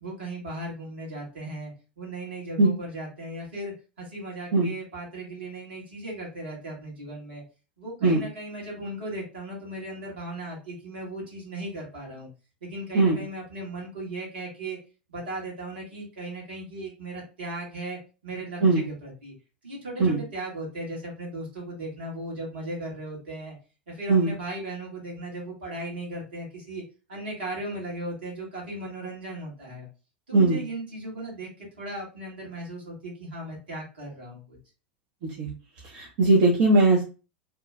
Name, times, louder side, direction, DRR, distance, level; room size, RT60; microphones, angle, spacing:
voice 1, 0.0-7.4 7.8-12.3 12.6-14.8 15.1-19.3 19.6-23.5 23.9-26.8 27.1-29.9 30.3-34.6, right 1 dB, 70° right, -3 dB, 1.5 m, -37 dB
voice 2, 30.3-30.6 35.2-35.5 35.8-37.0, right 2 dB, 50° right, -3 dB, 0.8 m, -20 dB
3.0 x 2.2 x 3.3 m, 0.33 s
figure-of-eight pair, 85°, 6 cm